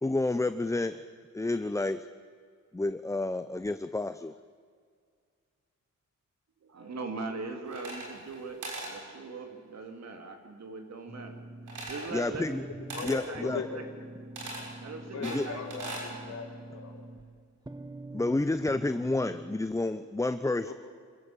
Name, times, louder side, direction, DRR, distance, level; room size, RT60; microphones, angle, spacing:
voice 1, 0.0-1.0 1.3-2.1 2.7-4.3 12.1-12.6 13.0-13.6 15.2-15.5 18.1-20.7, left 2 dB, 10° left, 11 dB, 0.6 m, -30 dB
voice 2, 6.6-11.4 11.6-12.6 13.3-13.4 13.7-13.8 14.8-15.9 16.3-16.4, right 3 dB, 60° right, 4 dB, 3.4 m, -41 dB
sound 1, 7.7-8.4 8.6-9.0 11.7-12.1 12.9-13.2 14.4-14.7 15.2-16.1, right 2 dB, 80° right, 6.6 m, -39 dB
sound 2, 11.1-19.6, right 2 dB, 15° right, 1.1 m, -45 dB
voice 3, 12.9-13.7 15.1-16.9 20.6-20.7, left 5 dB, 60° left, 2 dB, 3.8 m, -39 dB
26.0 x 15.0 x 9.0 m, 2.1 s
wide cardioid pair, 115°, 30 cm